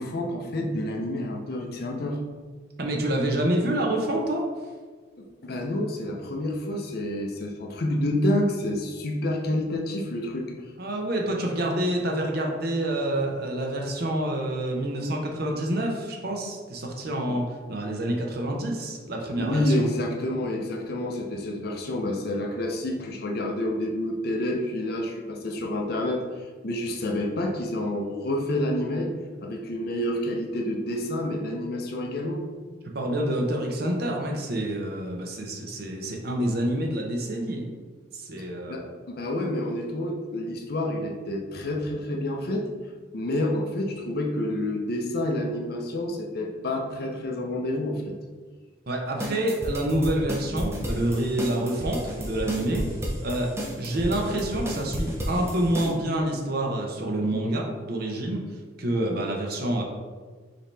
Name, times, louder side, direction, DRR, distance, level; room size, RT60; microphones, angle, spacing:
voice 1, 0.0-2.2 5.2-10.5 17.3-17.4 19.4-26.2 26.6-29.1 29.4-32.5 38.4-42.7 43.1-48.2, left 1 dB, 50° left, 1 dB, 0.6 m, -28 dB
voice 2, 2.8-4.4 10.8-19.9 32.9-37.7 38.1-38.7 48.9-53.0 53.2-58.4 58.8-59.8, right 1 dB, 50° right, 1 dB, 0.7 m, -27 dB
sound 1, 49.2-55.9, equal, 15° right, 0.6 m, -32 dB
5.2 x 2.8 x 3.3 m, 1.5 s
head